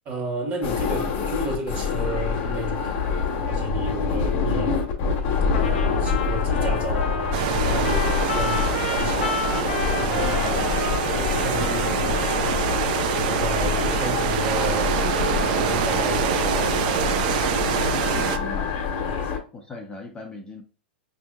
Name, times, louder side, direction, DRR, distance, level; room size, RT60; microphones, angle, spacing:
voice 1, 0.0-4.8 5.5-9.3 9.9-10.6 11.1-12.6 13.2-17.2 19.0-19.4, right 2 dB, 30° right, 1.4 m, -33 dB
sound 1, 0.6-19.4, left 6 dB, 45° left, 1.0 m, -26 dB
Trumpet, 5.5-12.9, left 6 dB, 70° left, 0.7 m, -32 dB
sound 2, 7.3-18.4, right 10 dB, 55° right, 0.4 m, -26 dB
voice 2, 10.2-10.7 11.4-11.8 17.9-18.8 19.5-20.6, left 3 dB, 15° left, 0.6 m, -37 dB
5.2 x 2.7 x 2.3 m
hypercardioid pair, 105°, 6 cm